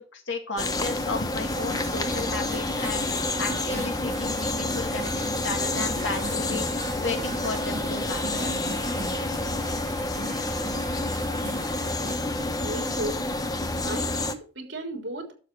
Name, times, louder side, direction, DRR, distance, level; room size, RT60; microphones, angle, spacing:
voice 1, 0.0-8.8, left 3 dB, 85° left, 3 dB, 2.3 m, -34 dB
sound 1, 0.6-14.3, left 2 dB, 20° left, 1.0 m, -29 dB
sound 2, 1.5-12.2, right 3 dB, 40° right, 1.0 m, -39 dB
voice 2, 12.6-13.2 13.8-15.3, right 1 dB, 70° right, 3 dB, 3.6 m, -34 dB
12.0 x 7.2 x 4.8 m, 0.38 s
head